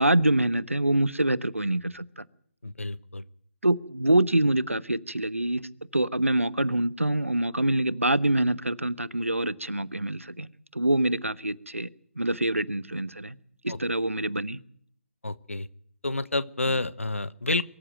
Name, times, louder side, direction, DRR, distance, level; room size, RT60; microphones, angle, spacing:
voice 1, 0.0-2.2 3.6-11.9 12.2-13.4 13.6-14.6 16.7-16.8, right 1 dB, 90° right, 18 dB, 1.1 m, -25 dB
voice 2, 2.6-3.2 13.7-13.8 15.2-15.7 16.0-17.6, left 2 dB, 80° left, 18 dB, 1.1 m, -29 dB
23.5 x 14.5 x 9.1 m, 0.64 s
figure-of-eight pair, 145°, 7 cm